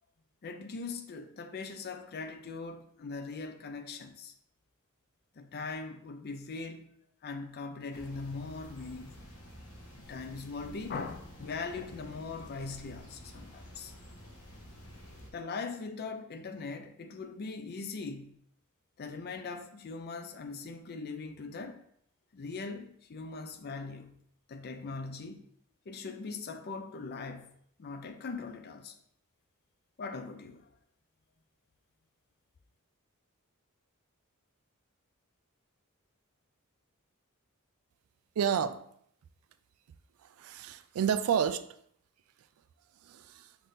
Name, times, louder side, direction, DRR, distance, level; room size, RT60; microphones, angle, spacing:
voice 1, 0.4-4.3 5.4-6.9 7.2-9.3 10.0-13.9 15.3-18.4 19.0-21.8 22.3-24.2 24.5-25.5 25.9-27.5 27.8-29.0 30.0-30.7, left 4 dB, 50° left, 0.5 m, -40 dB
sound 1, 7.9-15.3, equal, 80° left, 1.0 m, -50 dB
voice 2, 38.4-38.8 40.2-41.7 43.0-43.5, right 8 dB, 75° right, 0.3 m, -30 dB
5.9 x 2.7 x 3.3 m
head